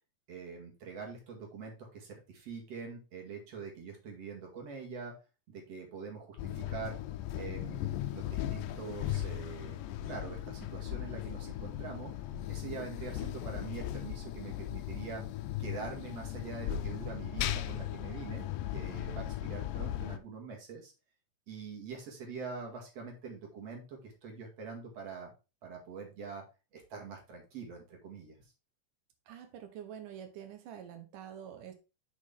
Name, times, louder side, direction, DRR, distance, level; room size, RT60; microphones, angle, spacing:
voice 1, 0.3-5.1 5.5-7.0 7.4-7.8 8.1-9.8 10.0-12.1 12.5-15.2 15.6-20.9 21.5-25.3 25.6-26.4 26.7-28.4, right 5 dB, 55° right, 1 dB, 2.8 m, -44 dB
sound 1, 6.4-20.2, left 12 dB, 80° left, 2.0 m, -37 dB
voice 2, 29.3-31.7, right 9 dB, 80° right, 6 dB, 2.6 m, -46 dB
6.4 x 6.0 x 3.5 m, 0.29 s
omnidirectional pair, 3.8 m